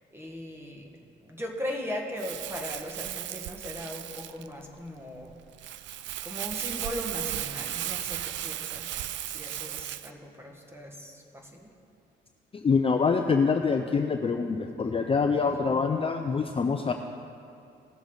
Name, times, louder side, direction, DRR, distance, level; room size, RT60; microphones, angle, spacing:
voice 1, 0.1-0.9 1.2-5.3 6.2-8.9 9.3-11.7 15.4-15.5, left 1 dB, 10° right, 1 dB, 1.6 m, -38 dB
Crumpling crinkling, 2.2-10.1, right 12 dB, 70° right, 0.4 m, -36 dB
voice 2, 12.5-16.9, left 5 dB, 30° left, 5 dB, 0.5 m, -25 dB
17.5 x 7.0 x 3.9 m, 2.5 s
cardioid pair, 90°, 20 cm